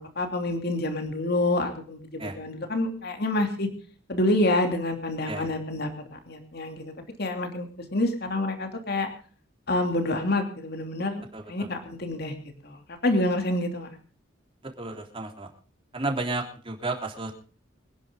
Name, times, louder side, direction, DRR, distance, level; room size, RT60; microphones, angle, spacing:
voice 1, 0.0-2.0 2.4-3.7 4.1-6.8 7.2-9.1 9.7-11.2 11.5-13.9, left 1 dB, 55° left, 5 dB, 3.0 m, -27 dB
voice 2, 11.3-11.7 14.8-15.5 15.9-17.3, right 2 dB, 30° right, 2 dB, 3.6 m, -32 dB
26.0 x 10.5 x 3.8 m, 0.40 s
head